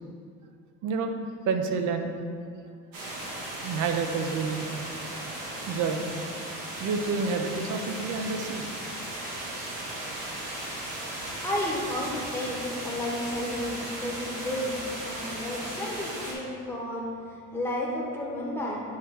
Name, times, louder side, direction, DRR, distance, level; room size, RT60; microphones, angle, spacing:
voice 1, 0.8-2.2 3.6-4.7 5.7-6.1 6.8-8.6, right 4 dB, 55° right, 5 dB, 0.6 m, -29 dB
sound 1, 2.9-16.3, right 1 dB, 70° right, 1.5 m, -36 dB
voice 2, 11.2-14.8 15.0-18.8, left 1 dB, 5° left, -4 dB, 0.9 m, -32 dB
8.4 x 3.0 x 4.7 m, 2.3 s
cardioid pair, 165°, 36 cm